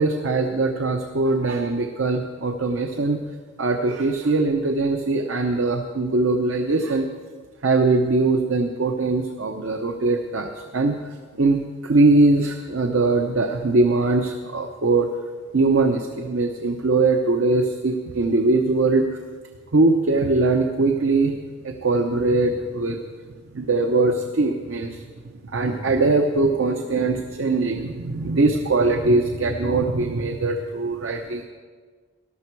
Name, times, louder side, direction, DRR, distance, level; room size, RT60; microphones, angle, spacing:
voice 1, 0.0-3.2 3.6-7.1 7.6-11.0 11.4-15.1 15.5-19.1 19.7-21.4 21.6-23.0 23.5-25.0 25.4-31.4, right 3 dB, 85° right, 4 dB, 0.8 m, -21 dB
14.0 x 12.0 x 4.6 m, 1.6 s
head